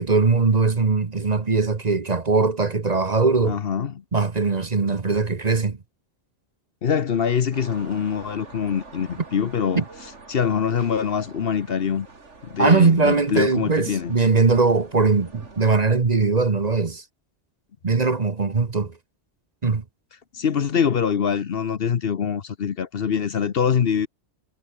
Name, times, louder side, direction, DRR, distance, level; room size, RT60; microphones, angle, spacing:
voice 1, 0.0-3.6 4.1-5.8 9.7-9.8 12.6-17.0 17.8-18.9 19.6-19.8, right 4 dB, 35° right, 1.2 m, -20 dB
voice 2, 3.4-3.9 6.8-9.8 10.3-12.1 12.4-14.2 20.3-24.1, left 7 dB, 55° left, 1.0 m, -24 dB
sound 1, 7.5-15.9, right 3 dB, 75° right, 3.1 m, -45 dB
omnidirectional pair, 1.2 m